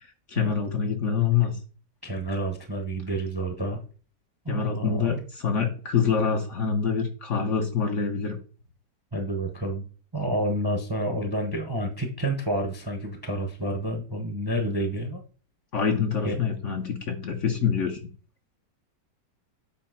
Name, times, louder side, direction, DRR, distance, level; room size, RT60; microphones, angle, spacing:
voice 1, 0.3-1.5 4.5-5.2 5.4-8.4 15.7-18.0, left 6 dB, 50° left, 4 dB, 1.1 m, -25 dB
voice 2, 2.0-3.8 4.4-5.2 9.1-9.8 10.1-15.2 16.2-16.4, right 1 dB, 20° right, 5 dB, 0.7 m, -29 dB
8.4 x 2.9 x 5.7 m, 0.39 s
omnidirectional pair, 1.9 m